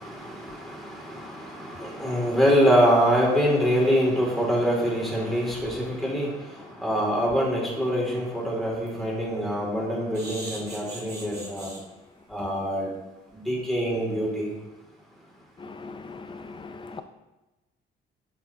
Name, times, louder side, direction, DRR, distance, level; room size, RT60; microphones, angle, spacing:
voice 1, 0.0-6.3 6.8-11.7 12.3-12.9 13.5-14.5, equal, ahead, -3 dB, 2.6 m, -24 dB
sound 1, 7.8-7.9 8.4-8.5 8.8-9.0 10.1-11.8 12.4-12.5 12.9-13.0 13.3-13.4, right 2 dB, 55° right, 2.5 m, -40 dB
voice 2, 15.6-17.0, left 4 dB, 25° left, 10 dB, 0.5 m, -40 dB
7.9 x 6.4 x 2.9 m, 1.1 s
cardioid pair, 90°, 20 cm